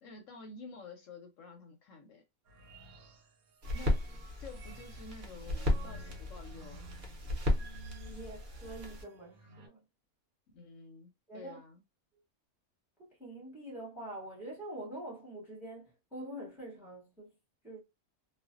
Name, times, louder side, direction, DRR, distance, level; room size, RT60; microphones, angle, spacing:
voice 1, 0.0-2.2 3.7-4.0 4.4-6.9 7.2-7.6 10.5-11.8, left 4 dB, 70° left, 0.8 m, -50 dB
sound 1, 2.4-9.7, right 2 dB, 80° right, 1.2 m, -53 dB
sound 2, 3.6-9.0, left 1 dB, 45° right, 0.8 m, -35 dB
voice 2, 8.1-9.8 11.3-11.6 13.0-17.3 17.6-17.8, right 1 dB, ahead, 0.7 m, -45 dB
2.5 x 2.1 x 2.4 m
omnidirectional pair, 1.6 m